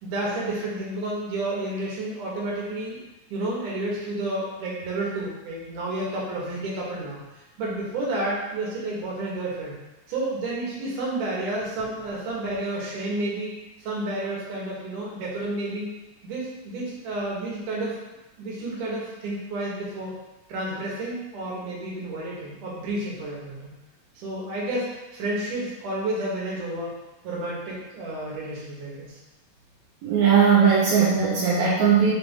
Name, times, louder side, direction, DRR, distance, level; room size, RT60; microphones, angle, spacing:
voice 1, 0.0-3.0 3.3-9.8 10.1-15.9 16.2-18.0 18.4-20.1 20.5-23.7 24.2-27.0 27.2-29.2, right 2 dB, 65° right, -5 dB, 2.9 m, -31 dB
voice 2, 30.0-32.1, right 6 dB, 80° right, -7 dB, 2.7 m, -19 dB
5.6 x 4.7 x 3.6 m, 1.0 s
omnidirectional pair, 4.1 m